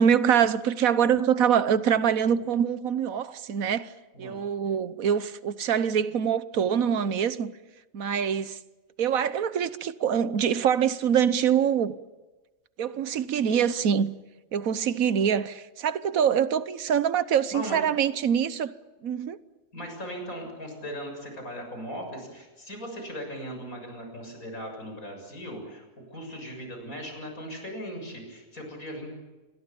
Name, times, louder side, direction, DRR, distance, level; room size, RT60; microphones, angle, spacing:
voice 1, 0.0-3.9 4.2-7.5 7.9-8.6 9.0-11.9 12.8-14.2 14.5-18.7 19.0-19.4, right 8 dB, 85° right, 1.4 m, -24 dB
voice 2, 17.5-17.8 19.7-29.1, equal, 90° left, 7.5 m, -38 dB
27.5 x 22.5 x 7.2 m
omnidirectional pair, 1.4 m